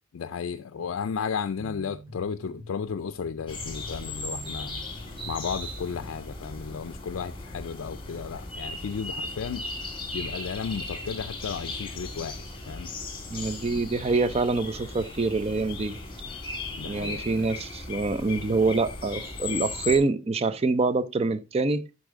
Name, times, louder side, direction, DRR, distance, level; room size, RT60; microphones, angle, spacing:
voice 1, 0.1-4.7 5.3-9.6 10.1-12.9 16.8-17.3, left 6 dB, 80° left, 0.4 m, -34 dB
sound 1, 1.6-6.9, equal, 15° right, 4.0 m, -48 dB
sound 2, 3.5-20.0, left 3 dB, 25° left, 1.8 m, -37 dB
voice 2, 13.3-16.0 16.9-21.9, right 3 dB, 30° right, 0.5 m, -26 dB
11.5 x 4.1 x 3.6 m
head